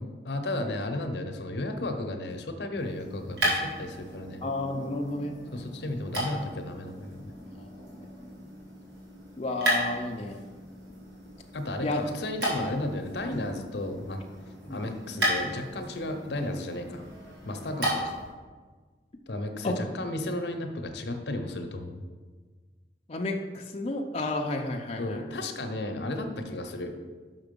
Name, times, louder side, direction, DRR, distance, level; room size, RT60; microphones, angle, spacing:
voice 1, 0.0-4.4 5.5-7.3 11.5-14.2 14.7-17.0 17.4-18.2 19.3-22.0 25.0-26.9, left 1 dB, 70° left, 6 dB, 0.7 m, -34 dB
sound 1, 2.7-18.3, equal, 75° right, 2.2 m, -35 dB
voice 2, 4.4-5.4 7.8-8.1 9.4-10.4 11.8-12.0 14.6-14.8 19.6-19.8 23.1-25.2, left 2 dB, 35° left, 1 dB, 0.5 m, -31 dB
5.8 x 5.8 x 5.2 m, 1.4 s
head